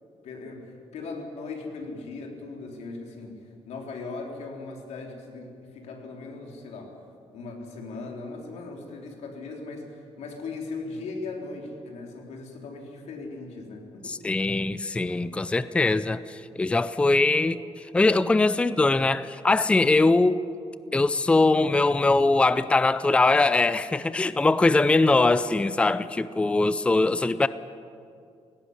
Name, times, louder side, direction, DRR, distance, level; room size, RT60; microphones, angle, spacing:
voice 1, 0.2-7.0 7.3-14.2, left 3 dB, 80° left, 1 dB, 3.8 m, -38 dB
voice 2, 14.0-20.4 20.9-27.5, left 3 dB, 10° left, 14 dB, 0.4 m, -22 dB
18.0 x 17.5 x 9.8 m, 2.4 s
cardioid pair, 160°, 11 cm